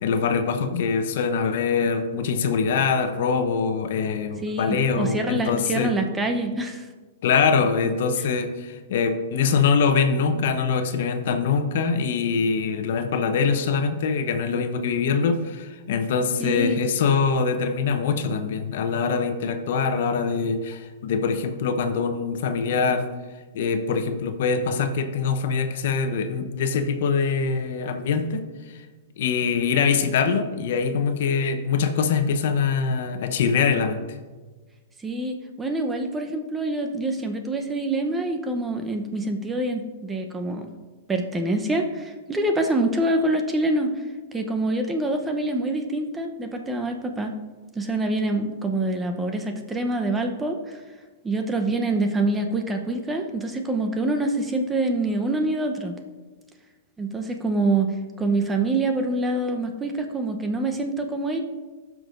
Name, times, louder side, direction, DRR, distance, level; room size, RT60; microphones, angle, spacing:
voice 1, 0.0-5.9 7.2-23.1 23.5-28.4 28.7-28.8 29.2-34.2, left 5 dB, 65° left, 8 dB, 0.8 m, -23 dB
voice 2, 4.4-6.9 16.4-16.8 35.0-40.7 41.1-43.9 44.3-47.3 47.7-50.8 51.2-55.9 57.0-57.9 58.2-61.4, right 2 dB, 15° right, 5 dB, 0.8 m, -25 dB
15.0 x 6.1 x 2.6 m, 1.3 s
hypercardioid pair, 125°, 0 cm